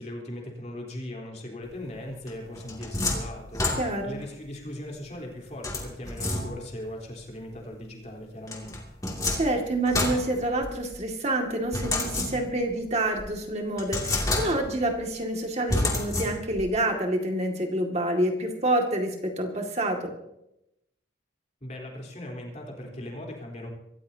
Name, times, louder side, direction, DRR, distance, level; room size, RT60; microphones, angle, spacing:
voice 1, 0.0-8.8 21.6-23.7, left 1 dB, 35° left, 0 dB, 3.8 m, -39 dB
sound 1, 2.3-4.2 5.6-6.8 8.5-11.0 11.7-12.7 13.2-13.3 13.8-14.9 15.7-16.7, left 2 dB, 20° left, 2.5 m, -29 dB
voice 2, 3.8-4.2 9.3-20.1, right 1 dB, 35° right, 2 dB, 2.2 m, -27 dB
24.5 x 14.5 x 2.8 m, 0.82 s
head